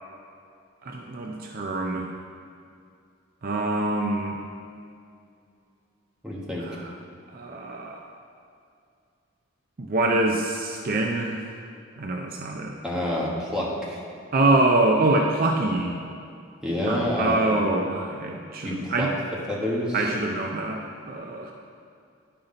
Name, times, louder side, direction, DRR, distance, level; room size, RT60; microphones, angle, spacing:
voice 1, 0.8-2.1 3.4-4.4 6.6-6.9 7.3-8.0 9.8-11.4 12.0-12.8 14.3-15.9 16.8-19.1 19.9-21.5, right 2 dB, 45° right, 1 dB, 0.5 m, -25 dB
voice 2, 6.2-6.6 12.8-14.0 16.6-17.4 18.6-19.1 19.5-20.1, left 1 dB, 5° right, -5 dB, 1.4 m, -28 dB
10.5 x 5.7 x 3.9 m, 2.4 s
head